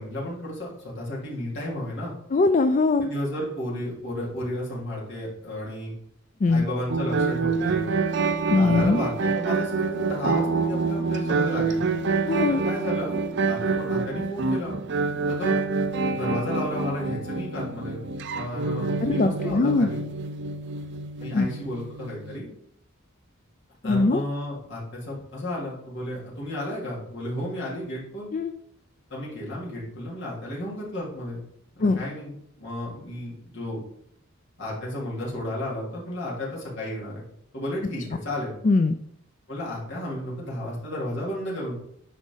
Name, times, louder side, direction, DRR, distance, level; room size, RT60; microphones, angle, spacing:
voice 1, 0.0-2.1 3.0-5.9 6.5-7.9 8.5-11.8 12.5-13.2 13.4-14.8 15.3-15.5 16.1-18.0 18.3-20.0 21.2-22.5 23.8-28.3 29.1-31.4 31.8-33.8 34.6-37.2 37.5-38.5 39.5-41.7, left 1 dB, 60° left, -5 dB, 3.3 m, -33 dB
voice 2, 2.3-3.1 6.4-6.7 8.5-9.0 12.3-12.6 19.0-19.9 21.3-21.5 23.8-24.2 28.3-28.5 31.8-32.0 38.6-39.0, left 3 dB, 35° left, 9 dB, 0.4 m, -21 dB
sound 1, 6.9-22.4, right 4 dB, 55° right, 0.5 m, -27 dB
10.0 x 4.9 x 4.0 m, 0.72 s
head